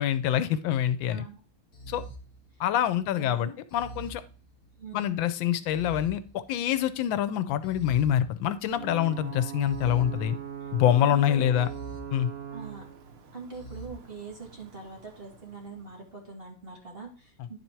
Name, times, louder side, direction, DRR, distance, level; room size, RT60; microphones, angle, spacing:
voice 1, 0.0-1.2 1.9-2.0 2.6-4.2 4.9-10.4 10.7-11.7 12.1-12.3, left 11 dB, 80° left, 13 dB, 1.3 m, -25 dB
sound 1, 0.6-1.1 1.7-3.0 3.7-5.0 5.7-7.0 7.6-8.9 9.6-10.9 11.6-12.9 13.5-13.9, right 2 dB, 35° left, 1.3 m, -46 dB
voice 2, 1.1-1.4 2.5-2.6 3.2-3.6 4.8-5.2 10.6-10.7 11.0-11.6 12.5-12.8 13.3-17.6, right 4 dB, 30° right, -1 dB, 2.0 m, -43 dB
Ocean / Boat Water vehicle / Alarm, 8.7-16.3, right 9 dB, 65° right, 0.6 m, -41 dB
9.9 x 4.2 x 4.4 m, 0.37 s
omnidirectional pair, 2.1 m